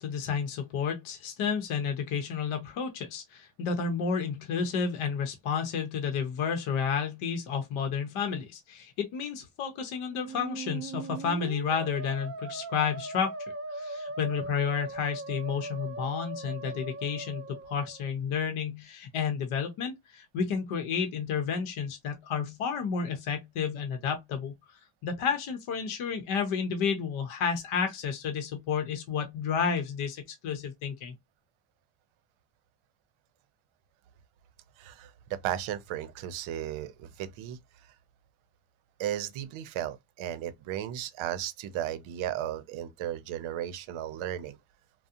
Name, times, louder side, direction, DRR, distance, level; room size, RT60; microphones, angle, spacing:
voice 1, 0.0-13.3 13.7-24.5 25.0-31.1, left 6 dB, 80° left, 0.7 m, -31 dB
Musical instrument, 10.1-18.1, right 3 dB, 30° right, 0.5 m, -39 dB
voice 2, 34.8-37.6 39.0-44.6, right 11 dB, 80° right, 0.6 m, -35 dB
2.4 x 2.0 x 2.6 m
cardioid pair, 75°, 48 cm